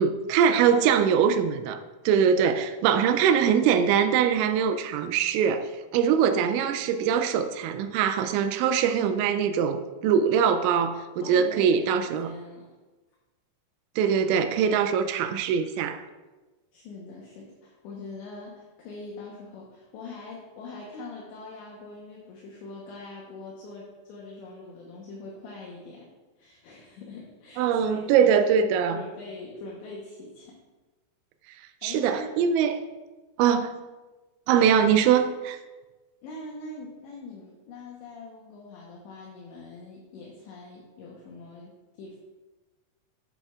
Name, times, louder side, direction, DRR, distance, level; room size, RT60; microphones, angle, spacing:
voice 1, 0.0-1.8 2.1-12.3 14.0-16.0 27.6-29.0 31.8-32.8 33.4-33.7 34.5-35.6, right 7 dB, 85° right, 2.6 m, -22 dB
voice 2, 0.6-1.2 11.2-12.7 16.7-26.1 26.4-30.6 31.8-32.3 36.2-41.7 42.0-42.2, left 3 dB, 75° left, 2.9 m, -42 dB
12.5 x 7.7 x 2.4 m
omnidirectional pair, 5.8 m